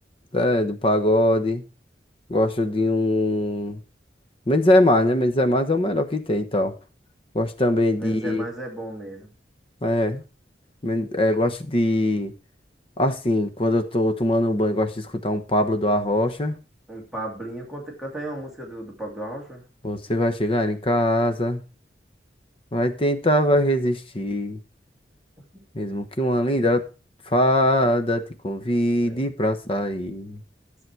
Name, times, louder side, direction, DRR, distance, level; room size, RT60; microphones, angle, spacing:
voice 1, 0.3-1.6 2.3-3.8 4.5-6.7 7.3-8.4 9.8-10.2 10.8-12.3 13.0-16.5 19.8-21.6 22.7-24.6 25.7-26.8 27.3-30.4, left 1 dB, 30° left, 8 dB, 1.0 m, -22 dB
voice 2, 7.9-9.3 16.9-19.6 29.0-29.2, right 1 dB, ahead, -2 dB, 2.5 m, -35 dB
11.0 x 7.6 x 4.6 m, 0.33 s
head